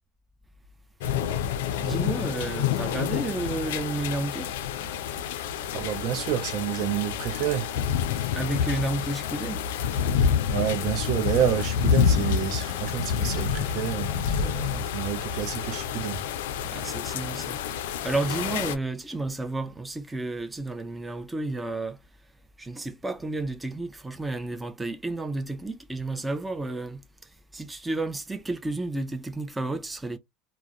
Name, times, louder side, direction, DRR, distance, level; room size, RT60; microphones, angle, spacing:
sound 1, 1.0-18.8, left 8 dB, 85° left, 0.3 m, -28 dB
voice 1, 1.8-4.5 8.3-9.6 16.6-22.0 22.6-27.0 27.5-30.2, right 2 dB, 10° right, 0.4 m, -31 dB
voice 2, 5.7-7.7 10.5-16.2, right 10 dB, 60° right, 0.6 m, -29 dB
2.2 x 2.0 x 2.7 m
supercardioid pair, 100°, 0 cm